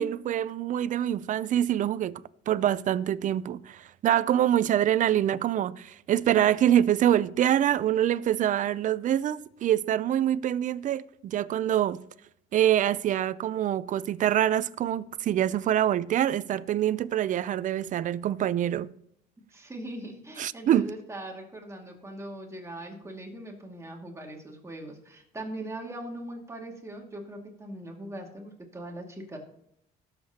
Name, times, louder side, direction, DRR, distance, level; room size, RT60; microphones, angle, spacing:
voice 1, 0.0-2.2 2.5-12.0 12.5-18.9 20.4-20.9, right 11 dB, 50° right, 0.5 m, -25 dB
voice 2, 19.5-29.4, right 1 dB, 15° right, 2.2 m, -40 dB
17.5 x 7.5 x 2.9 m
cardioid pair, 110°, 17 cm